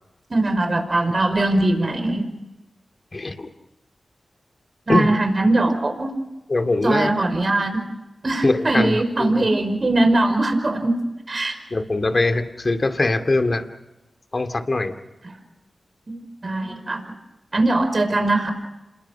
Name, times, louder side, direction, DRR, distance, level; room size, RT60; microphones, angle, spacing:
voice 1, 0.3-2.2 4.9-6.1 6.8-7.7 8.2-10.9 11.3-11.6 16.1-17.1 17.5-18.5, right 2 dB, 50° right, 5 dB, 5.3 m, -21 dB
voice 2, 3.1-3.5 4.9-5.1 6.5-7.1 8.4-9.4 11.7-13.6 14.3-14.9, left 2 dB, 45° left, 7 dB, 2.6 m, -22 dB
28.0 x 21.5 x 6.2 m, 0.99 s
cardioid pair, 40°, 0 cm